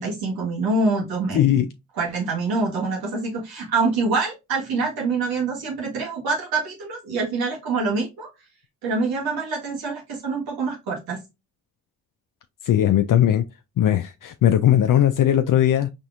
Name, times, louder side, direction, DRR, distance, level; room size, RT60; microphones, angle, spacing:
voice 1, 0.0-1.6 2.0-8.3 8.8-11.2, right 3 dB, 85° right, 1.7 m, -25 dB
voice 2, 1.3-1.7 12.6-13.4 13.8-15.9, left 11 dB, 60° left, 0.5 m, -18 dB
4.1 x 3.4 x 2.5 m
supercardioid pair, 40°, 36 cm